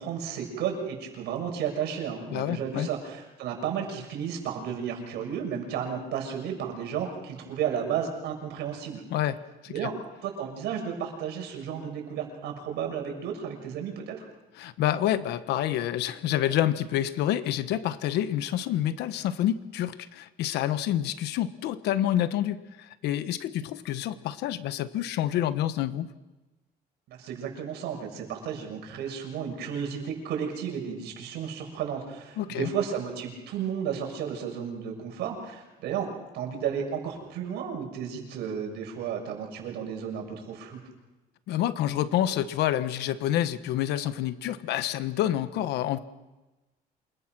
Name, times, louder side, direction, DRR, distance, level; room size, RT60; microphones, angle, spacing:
voice 1, 0.0-9.0 9.7-9.9 10.2-14.3 27.1-36.1 36.3-40.8, right 8 dB, 80° right, 3 dB, 6.7 m, -33 dB
voice 2, 2.3-2.9 9.1-9.4 9.6-9.9 14.6-26.1 32.4-32.7 41.5-46.0, left 12 dB, 80° left, 12 dB, 1.2 m, -28 dB
28.0 x 21.5 x 6.1 m, 1.1 s
cardioid pair, 110°, 17 cm